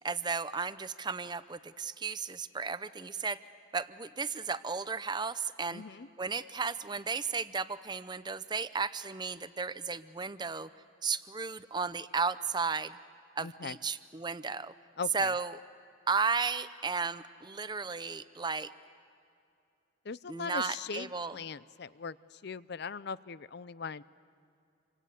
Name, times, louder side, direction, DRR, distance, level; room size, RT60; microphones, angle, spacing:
voice 1, 0.0-3.4 3.7-5.8 6.2-10.7 11.0-13.0 13.4-14.7 15.1-15.6 16.1-18.7 20.3-21.4, right 5 dB, 25° right, 13 dB, 0.7 m, -34 dB
voice 2, 5.7-6.1 13.4-13.8 15.0-15.3 20.0-24.0, left 5 dB, 60° left, 17 dB, 0.6 m, -40 dB
27.5 x 25.0 x 8.3 m, 2.5 s
head